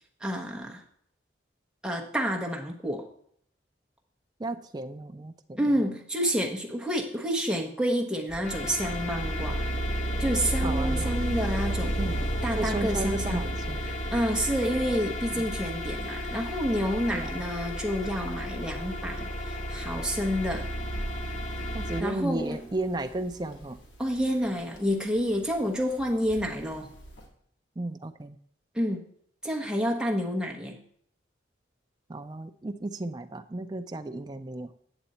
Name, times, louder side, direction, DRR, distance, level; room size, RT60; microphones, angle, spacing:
voice 1, 0.2-0.8 1.8-3.1 5.6-9.7 10.2-11.9 12.4-13.5 13.9-20.7 22.0-22.6 24.0-26.9 28.7-29.1 29.4-30.8, equal, 5° right, 0 dB, 1.0 m, -29 dB
voice 2, 4.4-5.6 10.5-11.3 12.0-12.2 12.6-13.8 15.3-15.4 17.1-17.4 21.7-23.8 27.8-28.4 32.1-34.7, right 2 dB, 25° right, 9 dB, 0.4 m, -34 dB
sound 1, 8.3-22.0, equal, 45° left, 1.0 m, -32 dB
sound 2, 11.9-27.3, right 1 dB, 75° left, 2.0 m, -49 dB
8.9 x 6.9 x 4.2 m, 0.66 s
head